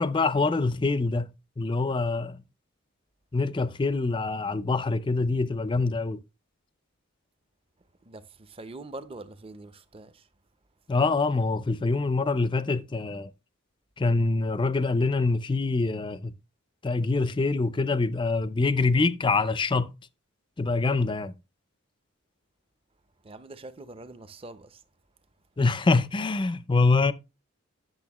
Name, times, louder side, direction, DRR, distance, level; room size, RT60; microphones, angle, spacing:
voice 1, 0.0-2.4 3.3-6.2 10.9-13.3 14.0-16.3 16.8-19.9 20.6-21.3 25.6-27.1, left 3 dB, 25° left, 0.4 m, -25 dB
voice 2, 8.0-10.3 23.2-24.8, right 2 dB, 25° right, 0.7 m, -44 dB
10.5 x 6.5 x 3.0 m
head